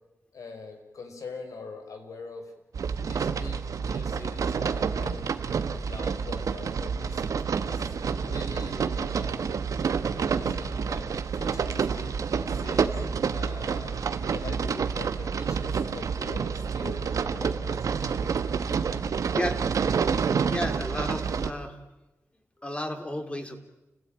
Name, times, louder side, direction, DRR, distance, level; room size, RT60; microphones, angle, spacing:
voice 1, 0.3-2.5 3.0-5.4 5.8-7.2 7.6-7.9 8.2-9.6 10.2-11.1 11.3-12.1 12.5-13.0 13.3-18.0, left 3 dB, 75° left, 5 dB, 4.8 m, -43 dB
sound 1, 2.7-21.5, right 6 dB, 80° right, 1.3 m, -28 dB
voice 2, 19.3-19.8 20.5-21.8 22.6-23.6, left 1 dB, 20° left, 6 dB, 3.0 m, -33 dB
29.5 x 17.0 x 8.8 m, 0.98 s
wide cardioid pair, 95°, 6 cm